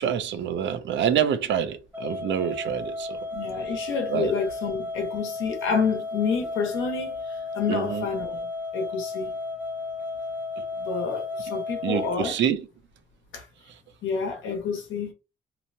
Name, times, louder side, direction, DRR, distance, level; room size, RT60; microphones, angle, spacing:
voice 1, 0.0-3.2 4.1-4.3 7.7-8.0 11.8-12.6, right 9 dB, 70° right, 0.5 m, -26 dB
sound 1, 1.9-12.2, left 3 dB, 10° right, 0.6 m, -33 dB
voice 2, 3.3-9.3 10.8-12.4 13.3-13.5 14.0-15.1, left 5 dB, 80° left, 1.0 m, -29 dB
2.9 x 2.1 x 2.7 m
cardioid pair, 90°, 20 cm